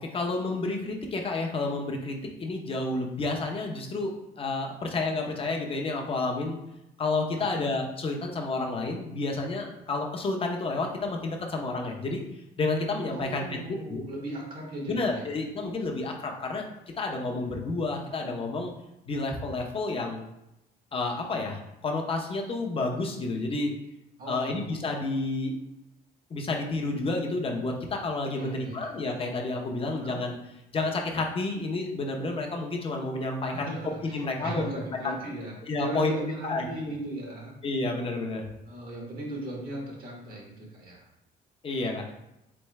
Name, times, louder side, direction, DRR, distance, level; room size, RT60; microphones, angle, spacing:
voice 1, 0.0-6.6 7.0-12.2 12.6-13.6 13.9-14.0 14.8-16.6 17.0-18.7 19.1-20.2 20.9-23.7 24.3-25.5 26.3-30.3 30.7-33.7 34.1-34.7 35.0-35.2 35.7-36.1 36.4-36.7 37.6-38.4 41.6-42.1, left 3 dB, 35° left, 1 dB, 0.8 m, -30 dB
voice 2, 7.4-7.7 13.1-15.3 24.2-24.9 28.3-28.9 29.9-30.2 33.4-37.5 38.6-41.1, right 1 dB, 55° right, -2 dB, 1.4 m, -37 dB
3.8 x 3.5 x 3.2 m, 0.88 s
cardioid pair, 110°, 17 cm